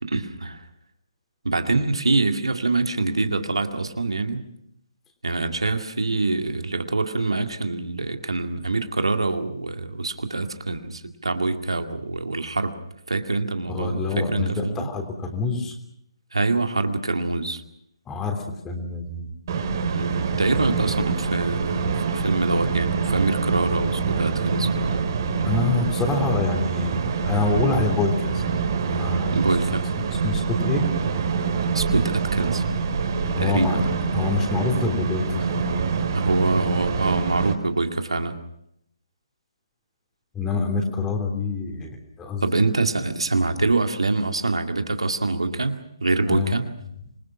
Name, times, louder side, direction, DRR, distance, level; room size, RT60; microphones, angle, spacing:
voice 1, 0.0-0.6 1.4-4.4 5.2-12.7 13.1-14.9 16.3-17.6 19.9-25.1 29.3-29.8 31.7-32.6 33.4-33.8 36.1-38.4 42.4-46.6, right 3 dB, 75° right, 6 dB, 2.2 m, -25 dB
voice 2, 13.7-15.7 18.1-19.3 25.4-28.6 28.8-29.4 30.2-30.9 33.4-33.8 34.1-35.9 40.3-42.4 46.3-46.5, left 4 dB, 10° left, 3 dB, 3.3 m, -26 dB
sound 1, 19.5-37.5, right 5 dB, 40° right, 3.6 m, -25 dB
26.5 x 21.0 x 6.1 m, 0.76 s
figure-of-eight pair, 140°, 3 cm